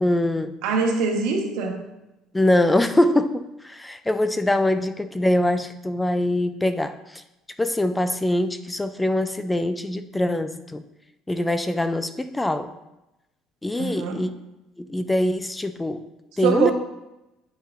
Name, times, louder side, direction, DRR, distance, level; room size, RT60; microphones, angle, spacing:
voice 1, 0.0-0.5 2.3-7.2 7.6-10.8 11.3-12.7 13.6-14.3 14.8-16.0 16.4-16.7, left 1 dB, 10° left, 11 dB, 0.3 m, -23 dB
voice 2, 0.6-1.8 13.7-14.3 16.3-16.7, right 5 dB, 80° right, 2 dB, 1.1 m, -24 dB
9.4 x 5.4 x 2.5 m, 0.95 s
cardioid pair, 140°, 0 cm